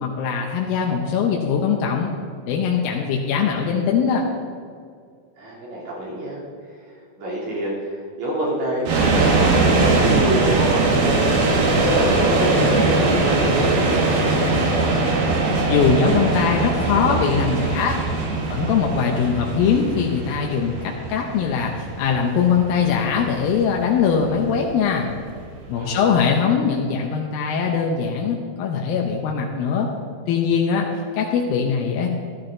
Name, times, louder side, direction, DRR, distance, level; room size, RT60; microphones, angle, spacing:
voice 1, 0.0-2.1 2.5-4.3 14.9-15.0 15.7-18.0 18.5-20.7 21.1-25.1 25.7-29.9 30.3-30.9 31.1-32.1, left 6 dB, 80° left, 0 dB, 2.6 m, -21 dB
voice 2, 5.4-6.4 7.2-11.2 11.7-14.5 25.7-26.1, right 1 dB, 50° right, -5 dB, 4.3 m, -27 dB
sound 1, 8.8-25.8, right 3 dB, 85° right, 3.4 m, -21 dB
13.5 x 12.0 x 3.9 m, 2.1 s
omnidirectional pair, 4.2 m